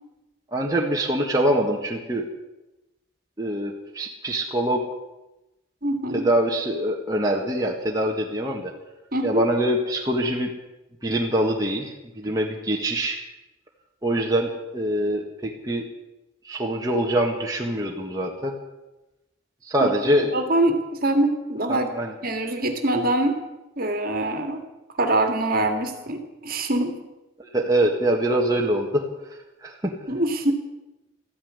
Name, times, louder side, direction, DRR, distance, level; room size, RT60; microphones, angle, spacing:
voice 1, 0.5-2.3 3.4-4.8 6.1-8.7 9.2-10.5 11.0-13.2 14.0-15.9 16.4-18.5 19.6-20.3 21.7-22.1 27.5-29.1 29.6-29.9, right 1 dB, 15° right, -1 dB, 1.6 m, -24 dB
voice 2, 5.8-6.3 9.1-9.4 19.8-19.9 20.3-22.0 22.2-23.4 23.8-24.6 25.0-26.9 30.1-30.5, right 1 dB, 45° right, 6 dB, 2.1 m, -24 dB
14.5 x 10.0 x 9.6 m, 0.99 s
head